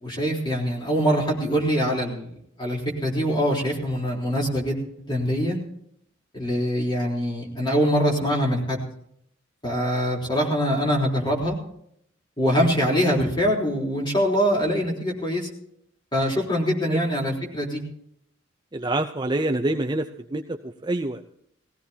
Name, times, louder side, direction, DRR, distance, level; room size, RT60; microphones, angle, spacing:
voice 1, 0.0-2.3 2.6-5.6 6.3-8.8 9.6-11.6 12.4-15.5 16.1-17.8, equal, 25° left, -2 dB, 3.7 m, -23 dB
voice 2, 18.7-20.6 20.8-21.2, right 2 dB, 20° right, 5 dB, 0.5 m, -26 dB
19.5 x 16.0 x 2.8 m, 0.70 s
head